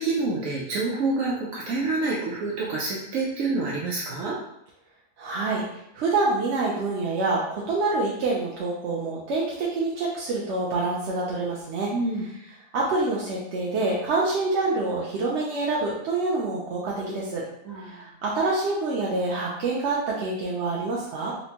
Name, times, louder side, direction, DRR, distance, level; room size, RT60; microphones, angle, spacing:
voice 1, 0.0-4.4 11.9-12.2 17.6-18.0, right 3 dB, 85° right, -4 dB, 1.0 m, -27 dB
voice 2, 5.2-5.6 5.9-11.9 12.7-17.4 17.8-21.3, right 3 dB, 65° right, -5 dB, 0.8 m, -26 dB
4.1 x 2.1 x 2.8 m, 0.78 s
omnidirectional pair, 1.4 m